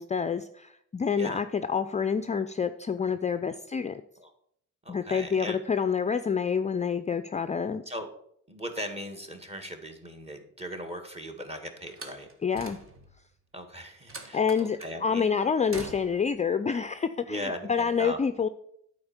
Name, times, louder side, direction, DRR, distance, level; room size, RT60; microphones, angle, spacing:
voice 1, 0.0-4.0 4.9-7.8 12.4-12.8 14.3-18.5, left 6 dB, 25° left, 11 dB, 0.4 m, -28 dB
voice 2, 4.8-5.6 7.9-8.1 8.5-12.3 13.5-15.3 16.1-16.2 17.3-18.2, equal, 20° right, 6 dB, 1.8 m, -38 dB
Slam, 11.9-13.2 14.1-15.0 15.7-16.3, right 3 dB, 45° right, 1.6 m, -44 dB
8.7 x 4.4 x 7.2 m, 0.70 s
cardioid pair, 90°, 30 cm